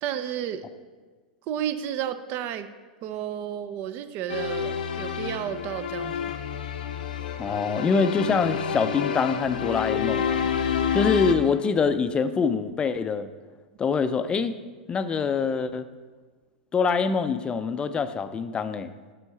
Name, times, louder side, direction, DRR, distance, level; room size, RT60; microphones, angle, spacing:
voice 1, 0.0-0.7 1.5-2.7 3.0-6.4, right 10 dB, 45° right, 11 dB, 0.6 m, -32 dB
sound 1, 4.3-11.3, left 7 dB, 75° left, 0.7 m, -29 dB
voice 2, 7.4-10.5 10.9-13.3 13.8-14.6 14.9-15.8 16.7-18.9, left 5 dB, 20° left, 11 dB, 0.5 m, -25 dB
10.5 x 3.8 x 5.6 m, 1.4 s
hypercardioid pair, 100°, 5 cm